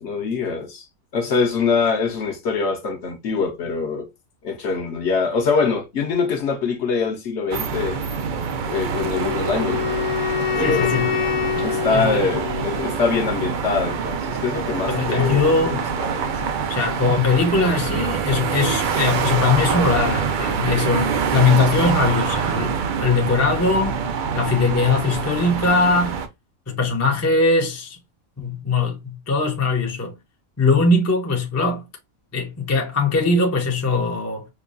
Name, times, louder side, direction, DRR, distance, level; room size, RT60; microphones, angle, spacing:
voice 1, 0.0-0.8 1.1-4.1 4.4-8.0 8.7-10.0 10.5-11.0 11.6-16.5, left 5 dB, 60° left, 0.9 m, -24 dB
sound 1, 7.5-26.3, right 6 dB, 80° right, 0.4 m, -25 dB
Wind instrument woodwind instrument, 8.9-13.0, left 10 dB, 90° left, 1.1 m, -26 dB
voice 2, 10.5-11.1 11.5-12.6 14.9-15.9 16.7-24.0 24.3-26.2 26.7-28.0 28.4-30.1 30.6-31.8 32.3-34.5, left 3 dB, 20° left, 0.5 m, -21 dB
5.1 x 2.3 x 2.4 m
omnidirectional pair, 1.5 m